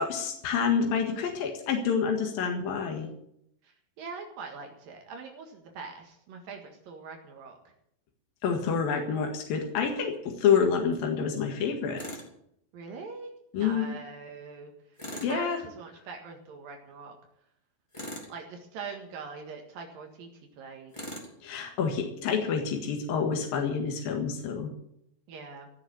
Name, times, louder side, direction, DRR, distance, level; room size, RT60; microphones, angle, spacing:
voice 1, 0.0-3.1 8.4-12.0 13.5-14.0 15.2-15.6 21.4-24.7, left 6 dB, 85° left, 3 dB, 3.5 m, -28 dB
voice 2, 3.6-7.6 12.7-17.2 18.3-20.3 20.6-20.9 25.3-25.7, right 4 dB, 80° right, 2 dB, 3.5 m, -43 dB
Tools, 12.0-12.3 15.0-15.4 17.9-18.4 20.9-21.3, equal, 10° left, 2.2 m, -40 dB
17.0 x 6.6 x 9.7 m, 0.74 s
omnidirectional pair, 4.0 m